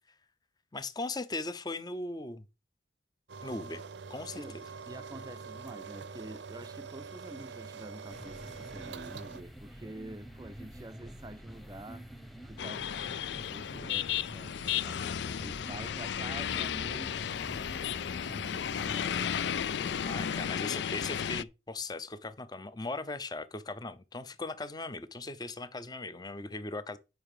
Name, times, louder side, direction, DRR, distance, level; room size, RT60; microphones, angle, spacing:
voice 1, 0.7-2.5 3.4-3.8 4.1-4.6 20.1-27.0, left 2 dB, 20° left, 0.7 m, -38 dB
sound 1, 3.3-9.4, right 5 dB, 80° right, 0.7 m, -45 dB
voice 2, 4.9-12.1 12.5-12.9 13.5-14.6 14.8-17.4 18.2-19.5 20.0-20.5 21.0-21.1, right 1 dB, 20° right, 0.5 m, -47 dB
sound 2, 8.1-20.5, equal, ahead, 1.0 m, -48 dB
sound 3, 12.6-21.4, left 8 dB, 75° left, 0.4 m, -34 dB
9.3 x 5.8 x 5.0 m
head